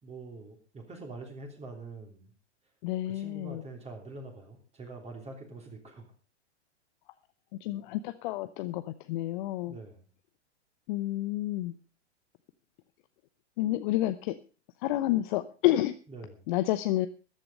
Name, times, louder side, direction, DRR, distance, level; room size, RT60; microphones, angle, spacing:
voice 1, 0.0-2.3 3.1-6.1 9.7-10.0 16.1-16.3, right 3 dB, 15° right, 2 dB, 3.2 m, -45 dB
voice 2, 2.8-3.6 7.6-9.8 10.9-11.7 13.6-14.4 14.8-15.9 16.5-17.1, left 15 dB, 40° left, 11 dB, 0.8 m, -29 dB
14.0 x 10.5 x 5.4 m, 0.37 s
figure-of-eight pair, 105°, 36 cm